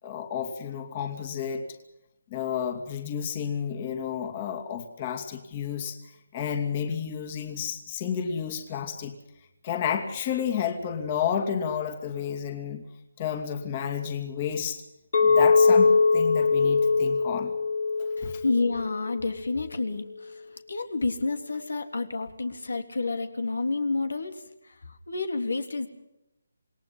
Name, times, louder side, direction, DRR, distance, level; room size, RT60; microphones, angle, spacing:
voice 1, 0.0-1.6 2.3-6.0 6.3-9.2 9.6-12.8 13.2-14.8 15.2-17.5 18.0-18.4, left 8 dB, 25° left, 5 dB, 2.6 m, -31 dB
Chink clink, 15.1-19.4, left 4 dB, 60° left, 2.4 m, -22 dB
voice 2, 18.2-25.9, left 3 dB, 80° left, 7 dB, 3.4 m, -30 dB
28.0 x 20.0 x 5.8 m, 0.87 s
hypercardioid pair, 165°, 0 cm